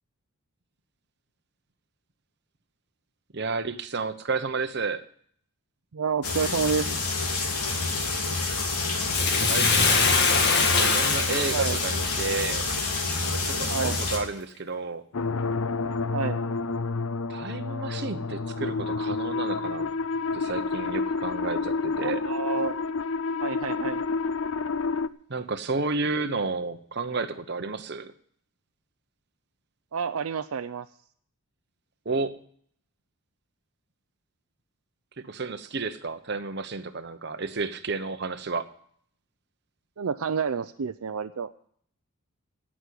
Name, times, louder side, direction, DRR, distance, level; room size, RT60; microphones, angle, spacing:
voice 1, 3.3-5.0 9.3-10.3 10.6-12.7 13.2-15.0 17.3-19.9 20.3-22.2 25.3-28.1 32.0-32.4 35.2-38.7, right 4 dB, 50° right, 8 dB, 1.0 m, -31 dB
voice 2, 5.9-7.2 11.5-11.8 13.7-14.0 16.1-16.4 22.0-22.7 23.4-24.0 29.9-30.9 40.0-41.5, right 6 dB, 75° right, 10 dB, 0.5 m, -29 dB
sound 1, 6.2-14.2, left 3 dB, 90° left, 2.9 m, -28 dB
Bathtub (filling or washing), 9.1-13.6 14.2-14.3, left 4 dB, 45° left, 1.8 m, -24 dB
sound 2, 15.1-25.1, left 4 dB, 65° left, 0.5 m, -29 dB
17.0 x 6.3 x 8.3 m, 0.62 s
head